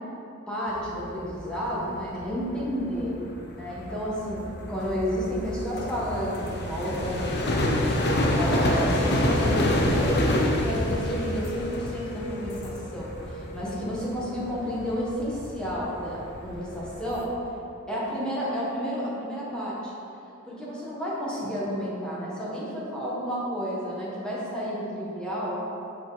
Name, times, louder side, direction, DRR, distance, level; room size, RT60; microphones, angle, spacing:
voice 1, 0.5-3.1 3.5-4.4 4.7-7.9 8.3-10.2 10.6-17.3 17.9-19.9 20.5-25.6, equal, 5° left, -7 dB, 1.3 m, -31 dB
sound 1, 0.7-17.2, left 1 dB, 50° left, 0.7 m, -28 dB
sound 2, 4.2-11.6, right 1 dB, 35° right, 0.8 m, -42 dB
7.5 x 4.5 x 4.0 m, 2.7 s
head